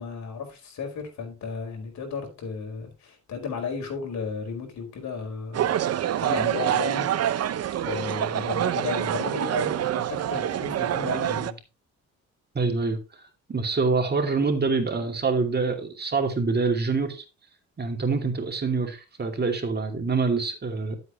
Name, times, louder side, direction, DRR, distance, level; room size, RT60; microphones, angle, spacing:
voice 1, 0.0-5.8 6.2-7.1 7.8-11.6, left 5 dB, 65° left, 3 dB, 4.8 m, -34 dB
sound 1, 5.5-11.5, right 11 dB, 55° right, 0.8 m, -26 dB
voice 2, 12.5-13.2 13.5-17.2 17.8-21.0, right 4 dB, 35° right, 3 dB, 2.6 m, -26 dB
12.5 x 8.1 x 3.1 m, 0.29 s
cardioid pair, 90°, 30 cm